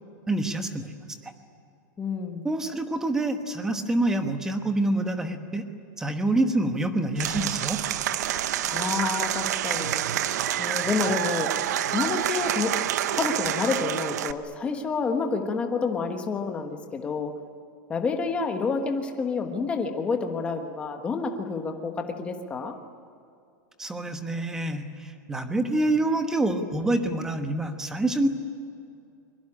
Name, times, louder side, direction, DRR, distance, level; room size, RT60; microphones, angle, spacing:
voice 1, 0.3-0.9 1.2-1.3 2.4-5.7 6.0-7.8 23.8-28.3, right 2 dB, 5° right, 7 dB, 1.2 m, -26 dB
voice 2, 2.0-2.5 8.7-10.0 10.6-11.5 11.9-12.7 13.1-17.3 17.9-22.7, left 4 dB, 10° left, 5 dB, 1.3 m, -29 dB
Applause / Crowd, 7.2-14.3, right 12 dB, 60° right, 0.9 m, -27 dB
24.0 x 23.0 x 9.9 m, 2.5 s
supercardioid pair, 180°, 10 cm